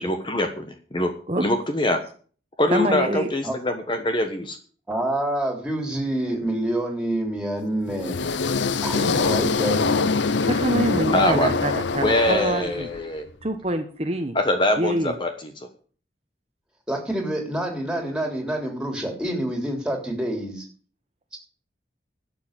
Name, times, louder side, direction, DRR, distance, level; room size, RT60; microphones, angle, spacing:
voice 1, 0.0-2.0 2.6-4.6 11.1-11.5 12.0-13.3 14.3-15.7, left 1 dB, 25° left, 6 dB, 1.1 m, -24 dB
voice 2, 2.7-3.3 10.5-12.9 13.4-14.4 14.8-15.1, right 1 dB, 35° right, 5 dB, 1.1 m, -25 dB
voice 3, 4.9-8.2 8.8-10.2 11.3-11.5 16.9-20.6, right 1 dB, 5° right, 2 dB, 3.3 m, -27 dB
sound 1, 7.9-13.0, left 4 dB, 80° left, 0.7 m, -24 dB
12.0 x 6.8 x 8.9 m, 0.43 s
head